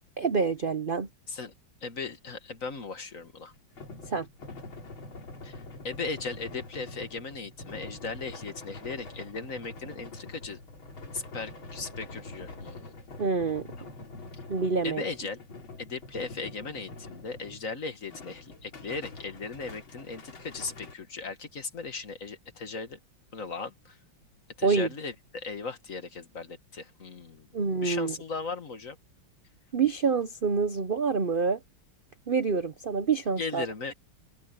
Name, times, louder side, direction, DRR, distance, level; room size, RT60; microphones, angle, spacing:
voice 1, 0.2-1.1 4.1-4.3 13.2-13.7 14.5-15.0 24.6-24.9 27.5-28.1 29.7-31.6 32.3-33.7, right 5 dB, 65° right, 0.5 m, -27 dB
voice 2, 1.8-3.5 5.4-10.6 11.1-12.9 14.8-15.4 15.8-23.0 23.3-24.0 24.6-27.5 27.8-29.0 33.4-33.9, left 4 dB, 40° left, 1.9 m, -37 dB
sound 1, 3.5-17.7 18.1-20.9, left 3 dB, 85° left, 4.0 m, -45 dB
omnidirectional pair, 2.2 m